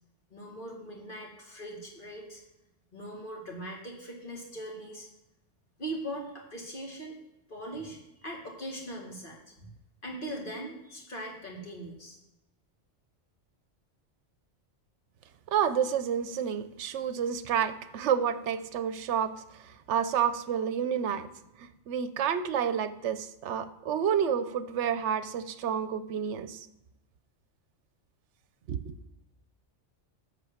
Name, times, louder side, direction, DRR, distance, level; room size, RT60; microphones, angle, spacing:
voice 1, 0.3-2.4 2.9-5.1 5.8-7.2 7.5-9.7 10.0-12.2, right 1 dB, 45° left, -1 dB, 2.1 m, -40 dB
voice 2, 15.5-19.4 19.9-21.3 21.6-26.7 28.7-28.9, right 8 dB, 75° right, 12 dB, 0.9 m, -29 dB
10.5 x 3.6 x 7.1 m, 0.92 s
omnidirectional pair, 1.2 m